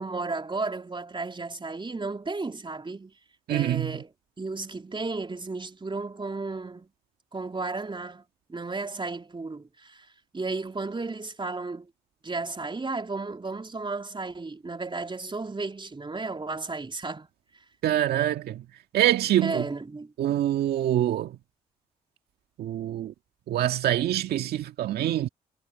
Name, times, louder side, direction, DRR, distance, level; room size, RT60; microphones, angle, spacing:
voice 1, 0.0-3.1 3.5-4.1 4.4-6.9 7.3-8.2 8.5-10.1 10.3-11.9 12.2-17.3 19.4-20.1, right 3 dB, 30° right, 3.7 m, -33 dB
voice 2, 3.5-3.9 17.8-18.6 18.9-19.6 20.2-21.3 22.6-23.1 23.5-25.3, right 12 dB, 75° right, 2.0 m, -25 dB
hypercardioid pair, 45°, 17 cm